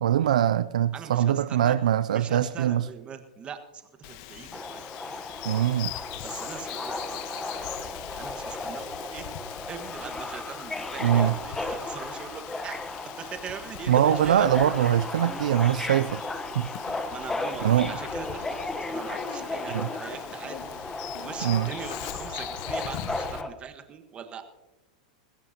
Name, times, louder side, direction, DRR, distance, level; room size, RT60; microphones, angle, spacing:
voice 1, 0.0-2.8 5.4-5.9 11.0-11.3 13.9-16.2 16.5-17.0 17.6-17.9 19.7-19.9 21.4-21.7, right 11 dB, 80° right, 0.4 m, -23 dB
voice 2, 0.9-1.8 2.1-4.8 5.4-5.7 6.2-9.3 9.7-12.8 13.2-14.5 17.1-20.8 21.2-24.4, right 7 dB, 30° right, 1.5 m, -41 dB
Bird vocalization bird call bird song, 4.0-23.4, left 12 dB, 55° left, 1.1 m, -41 dB
Subway metro underground, 4.5-23.5, left 2 dB, 10° left, 1.0 m, -35 dB
21.0 x 15.0 x 2.8 m
hypercardioid pair, 110°, 4 cm